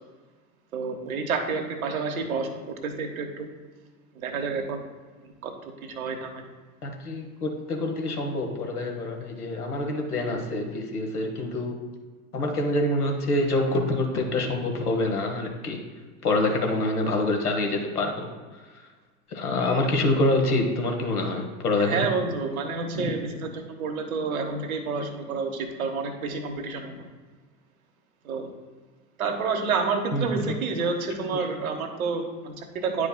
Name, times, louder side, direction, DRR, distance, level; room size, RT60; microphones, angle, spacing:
voice 1, 0.7-3.5 4.2-4.8 5.2-5.5 5.8-6.4 21.9-27.1 28.2-28.5 29.2-33.1, right 4 dB, 70° right, 3 dB, 1.1 m, -29 dB
voice 2, 6.8-11.8 12.3-15.8 16.2-18.3 19.3-22.1 22.9-23.1 30.1-30.5, left 2 dB, 80° left, 2 dB, 1.3 m, -26 dB
9.9 x 4.8 x 2.2 m, 1.4 s
figure-of-eight pair, 80°, 45 cm